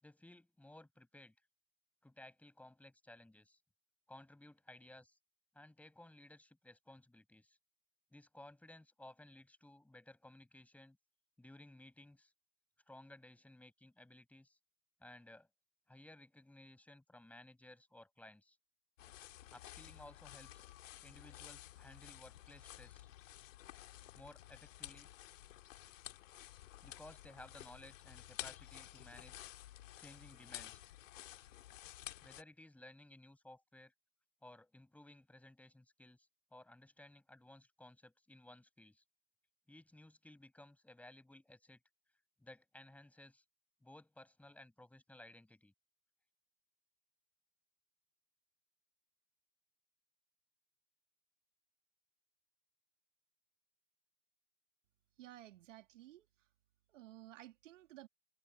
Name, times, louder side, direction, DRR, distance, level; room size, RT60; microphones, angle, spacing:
voice 1, 0.0-1.3 2.0-3.6 4.1-5.2 5.5-7.6 8.1-11.0 11.4-12.3 12.9-14.6 15.0-15.5 15.9-18.6 19.5-20.6 21.0-23.1 24.1-25.1 26.8-29.5 30.0-30.8 32.2-33.9 34.4-39.0 39.7-41.8 42.4-43.4 43.8-45.7, left 1 dB, 5° left, 6.7 m, -58 dB
sound 1, 19.0-32.4, left 14 dB, 65° left, 2.4 m, -53 dB
voice 2, 55.2-56.5 56.9-58.1, right 14 dB, 60° right, 2.4 m, -55 dB
hypercardioid pair, 125°, 41 cm